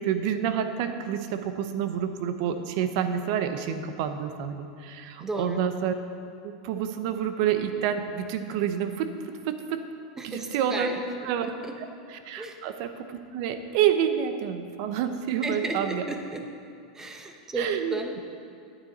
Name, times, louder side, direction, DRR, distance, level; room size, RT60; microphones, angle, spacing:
voice 1, 0.0-5.9 6.4-9.8 10.2-10.9 11.2-11.5 11.8-16.0 17.6-18.0, right 9 dB, 60° right, 9 dB, 0.7 m, -28 dB
voice 2, 5.2-5.6 10.2-11.1 11.6-11.7 12.4-12.6 15.4-16.5 16.9-18.2, right 2 dB, 15° right, 4 dB, 1.0 m, -33 dB
9.4 x 9.0 x 4.2 m, 2.4 s
supercardioid pair, 125°, 3 cm